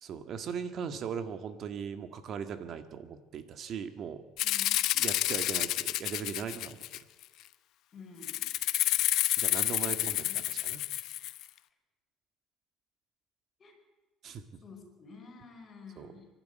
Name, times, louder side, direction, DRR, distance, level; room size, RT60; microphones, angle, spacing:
voice 1, 0.0-4.2 4.9-7.0 9.4-10.8 14.2-14.4 16.0-16.1, right 7 dB, 45° right, 9 dB, 1.7 m, -39 dB
Rattle (instrument), 4.4-7.2 8.2-11.4, left 15 dB, 65° left, 0.8 m, -29 dB
voice 2, 7.9-8.4 9.9-10.6 13.6-13.7 14.6-16.3, left 4 dB, 30° left, 2 dB, 5.1 m, -51 dB
24.0 x 12.0 x 9.3 m, 1.3 s
cardioid pair, 130°, 0 cm